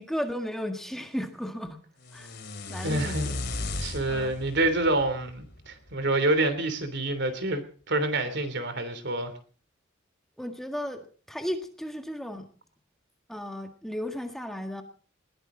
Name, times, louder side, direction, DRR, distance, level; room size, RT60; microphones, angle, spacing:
voice 1, 0.0-1.8 2.1-2.4 2.7-3.4 4.1-4.3 10.4-12.5 13.3-14.8, equal, ahead, 4 dB, 1.7 m, -34 dB
sound 1, 2.0-6.1, left 2 dB, 60° left, 2.7 m, -36 dB
voice 2, 2.8-3.3 3.8-9.3, right 2 dB, 60° right, 11 dB, 3.2 m, -27 dB
20.5 x 17.5 x 3.9 m, 0.42 s
head